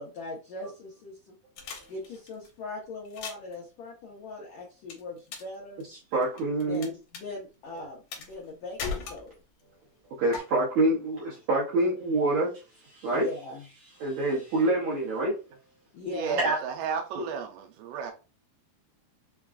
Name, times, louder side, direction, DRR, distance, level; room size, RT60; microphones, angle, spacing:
voice 1, 0.0-1.4 1.9-5.8 6.7-9.3 10.5-10.6 13.1-13.6 15.9-16.4, left 3 dB, 85° left, 1.5 m, -40 dB
sound 1, 1.6-2.5 3.0-3.5 4.9-5.5 5.8-6.9 7.1-7.2 8.1-8.5 8.8-9.6 10.3-10.4, left 5 dB, 70° left, 1.8 m, -37 dB
voice 2, 6.1-6.9 10.2-12.5 12.8-13.3 14.0-15.3 16.4-16.6 17.1-17.3, right 2 dB, 75° right, 1.6 m, -26 dB
voice 3, 16.1-18.1, right 6 dB, 90° right, 2.6 m, -33 dB
5.9 x 2.3 x 2.4 m
omnidirectional pair, 4.5 m